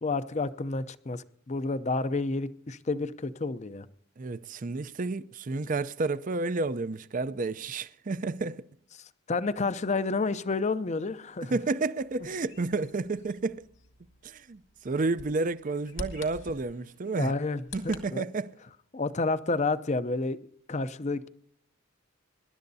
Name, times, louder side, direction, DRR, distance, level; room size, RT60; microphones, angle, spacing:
voice 1, 0.0-3.9 9.0-11.6 17.1-18.2 18.9-20.4 20.7-21.3, left 3 dB, 35° left, 0.6 m, -30 dB
voice 2, 4.2-8.7 11.5-13.6 14.2-17.3 17.7-18.5, right 3 dB, 40° right, 0.5 m, -31 dB
Bird vocalization bird call bird song, 12.0-18.0, left 2 dB, 70° left, 2.1 m, -47 dB
24.5 x 11.5 x 2.7 m
head